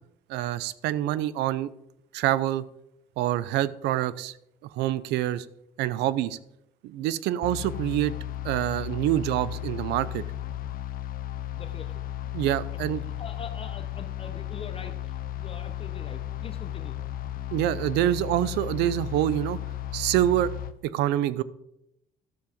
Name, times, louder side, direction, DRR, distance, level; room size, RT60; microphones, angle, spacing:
voice 1, 0.3-1.7 2.1-2.6 3.2-4.3 4.8-5.5 5.8-6.4 6.8-8.1 8.4-10.2 12.3-13.0 17.5-19.6 19.9-20.5 20.8-21.4, right 13 dB, 85° right, 18 dB, 0.6 m, -26 dB
sound 1, 7.4-20.7, left 13 dB, 60° left, 0.7 m, -35 dB
voice 2, 11.6-12.0 12.5-12.6 12.9-17.0, left 5 dB, 35° left, 8 dB, 1.0 m, -43 dB
12.5 x 7.0 x 5.2 m, 0.81 s
cardioid pair, 110°, 17 cm